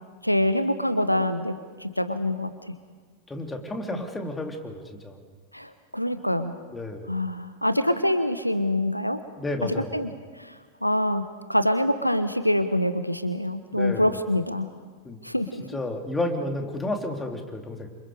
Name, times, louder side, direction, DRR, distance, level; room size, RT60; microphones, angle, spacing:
voice 1, 0.2-2.7 3.8-4.0 5.5-6.5 7.1-9.2 9.9-10.1 10.4-10.5 10.8-14.7 15.2-15.6, left 1 dB, 90° left, 11 dB, 1.2 m, -25 dB
voice 2, 3.3-5.2 6.7-7.1 9.4-9.9 13.7-14.1 15.0-15.2 15.7-17.9, left 1 dB, 10° left, 3 dB, 3.2 m, -31 dB
29.0 x 27.0 x 4.9 m, 1.5 s
figure-of-eight pair, 90°, 0 cm